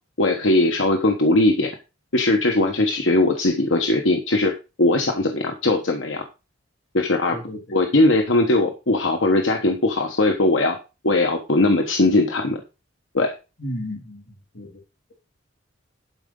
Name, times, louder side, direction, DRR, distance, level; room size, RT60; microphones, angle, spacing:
voice 1, 0.2-1.7 2.1-6.2 6.9-7.4 7.7-10.8 11.0-12.6 13.1-13.3, left 2 dB, 80° left, 4 dB, 1.3 m, -19 dB
voice 2, 7.3-7.8 13.6-14.7, equal, 60° left, 2 dB, 3.2 m, -34 dB
11.5 x 5.0 x 5.4 m, 0.29 s
head